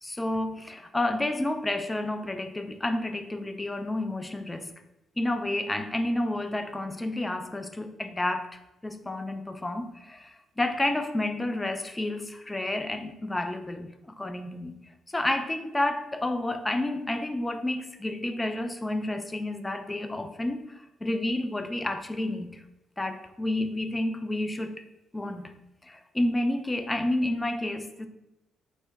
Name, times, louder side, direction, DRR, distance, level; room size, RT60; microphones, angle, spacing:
voice 1, 0.0-4.7 5.2-14.8 15.1-22.6 23.0-24.8 25.1-25.5 25.8-28.1, left 1 dB, 15° left, 8 dB, 0.3 m, -30 dB
3.6 x 2.1 x 3.3 m, 0.93 s
cardioid pair, 90°, 0 cm